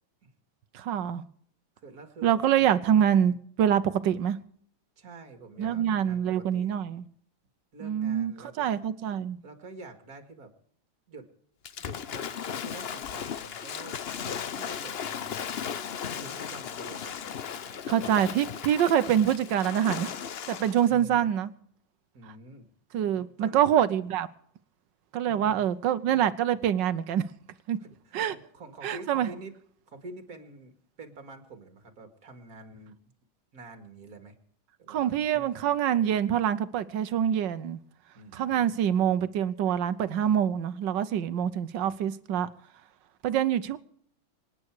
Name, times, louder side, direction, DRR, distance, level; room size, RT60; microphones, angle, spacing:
voice 1, 0.7-1.2 2.2-4.4 5.6-7.0 7.8-9.4 17.9-20.1 20.5-21.5 22.9-24.3 25.1-27.2 27.7-27.8 28.1-28.3 28.8-29.3 34.9-37.8 38.3-42.5 43.2-43.8, right 9 dB, 70° right, 1.5 m, -25 dB
voice 2, 1.8-2.7 5.0-6.8 7.7-8.7 9.4-10.5 11.1-11.3 11.8-18.2 20.9-21.3 22.1-22.7 23.4-23.6 25.3-25.7 27.8-29.6 29.9-32.9 33.5-34.4 34.8-35.6 38.1-38.7, right 2 dB, 50° right, 2.5 m, -47 dB
Waves surf / Splash splatter, 11.6-20.9, left 8 dB, 75° left, 0.5 m, -36 dB
26.0 x 9.7 x 4.8 m
omnidirectional pair, 2.1 m